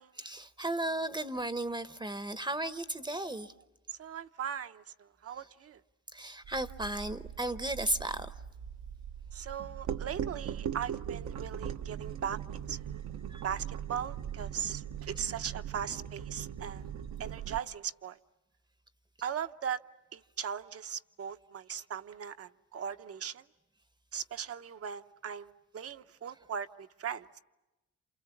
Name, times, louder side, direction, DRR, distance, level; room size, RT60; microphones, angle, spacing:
voice 1, 0.2-3.5 6.1-8.4 13.3-13.4, right 1 dB, 15° right, 0.9 m, -35 dB
voice 2, 3.9-5.8 9.3-13.0 13.4-16.8 17.2-18.2 19.2-19.8 20.1-23.4 24.1-27.4, right 8 dB, 50° right, 0.9 m, -39 dB
sound 1, 6.4-17.6, right 9 dB, 70° right, 1.0 m, -40 dB
29.0 x 28.0 x 7.2 m
cardioid pair, 90°, 30 cm